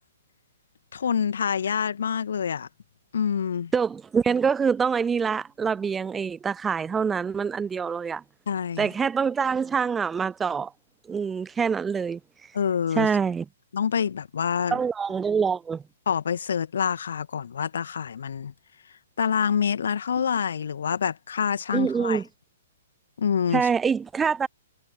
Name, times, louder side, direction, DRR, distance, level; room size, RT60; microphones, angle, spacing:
voice 1, 0.9-2.7 3.1-3.7 8.5-8.9 12.5-13.1 13.7-14.8 16.1-18.5 19.2-22.2 23.2-23.7, left 7 dB, 60° left, 2.1 m, -26 dB
voice 2, 3.7-8.2 8.8-10.7 11.1-12.2 13.0-13.4 14.7-15.8 21.7-22.2 23.5-24.5, right 6 dB, 10° right, 0.3 m, -25 dB
figure-of-eight pair, 115°, 0 cm